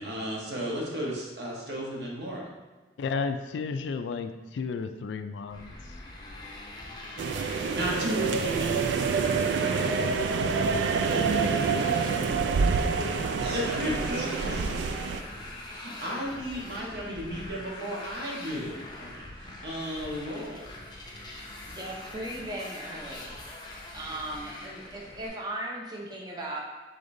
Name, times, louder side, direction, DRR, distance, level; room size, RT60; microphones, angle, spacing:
voice 1, 0.0-2.4 7.7-9.1 13.4-14.9 15.7-20.6, equal, 60° right, -3 dB, 1.1 m, -34 dB
voice 2, 3.0-6.0, left 4 dB, 80° left, 8 dB, 0.3 m, -33 dB
Motorcycle, 5.5-25.3, left 1 dB, 25° left, 0.6 m, -43 dB
sound 1, 7.2-15.2, right 5 dB, 80° right, 0.3 m, -27 dB
voice 3, 21.6-23.5 23.9-26.6, right 1 dB, 20° right, -2 dB, 0.6 m, -37 dB
5.0 x 3.9 x 2.6 m, 1.3 s
head